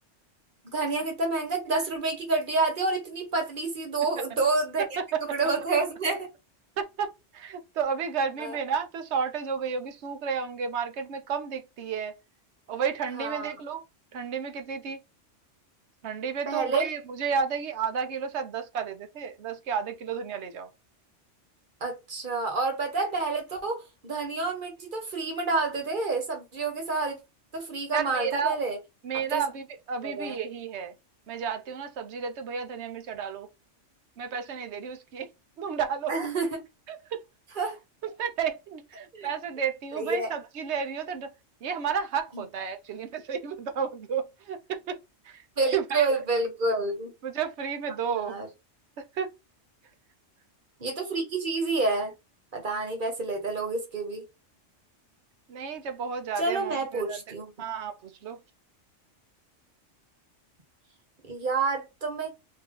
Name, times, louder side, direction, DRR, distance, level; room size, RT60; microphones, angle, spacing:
voice 1, 0.6-4.8 5.3-6.3 8.4-8.6 13.2-13.5 16.5-16.8 21.8-27.2 27.5-28.8 29.1-29.4 30.0-30.4 36.1-36.6 37.6-37.8 39.1-39.3 40.0-40.3 42.3-42.4 45.6-47.1 48.1-48.5 50.8-52.1 52.5-54.3 56.4-57.5 61.3-62.3, right 3 dB, 45° right, 1.3 m, -28 dB
voice 2, 6.8-12.2 12.7-13.8 14.1-15.0 16.0-20.7 27.9-28.6 29.0-30.9 31.3-33.5 34.2-35.3 35.6-36.3 36.9-37.2 38.2-41.3 41.6-45.0 45.2-45.4 45.7-46.1 47.2-48.4 49.0-49.3 55.5-57.2 57.6-58.4, right 6 dB, 70° right, 1.0 m, -32 dB
3.8 x 2.7 x 3.7 m
omnidirectional pair, 1.3 m